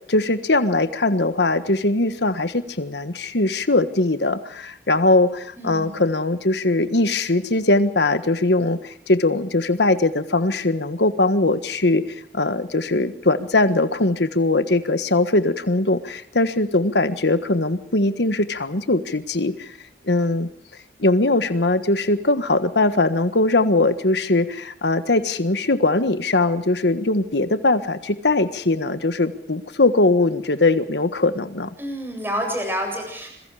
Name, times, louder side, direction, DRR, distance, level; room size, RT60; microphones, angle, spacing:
voice 1, 0.1-19.7 20.1-20.5 21.0-31.7, left 2 dB, 80° left, 11 dB, 1.5 m, -20 dB
voice 2, 5.6-6.0 31.8-33.3, equal, 10° right, 3 dB, 7.9 m, -28 dB
26.5 x 22.5 x 5.0 m, 0.75 s
head